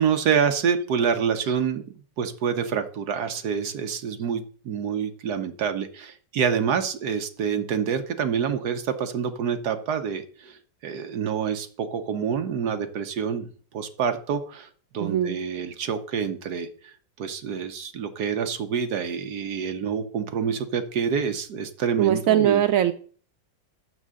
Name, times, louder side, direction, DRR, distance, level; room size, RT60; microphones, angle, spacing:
voice 1, 0.0-13.5 13.7-14.7 14.9-22.6, right 7 dB, 65° right, 8 dB, 1.3 m, -27 dB
voice 2, 15.0-15.4 22.0-22.9, right 11 dB, 85° right, 9 dB, 0.7 m, -21 dB
6.6 x 6.2 x 7.6 m, 0.44 s
omnidirectional pair, 2.0 m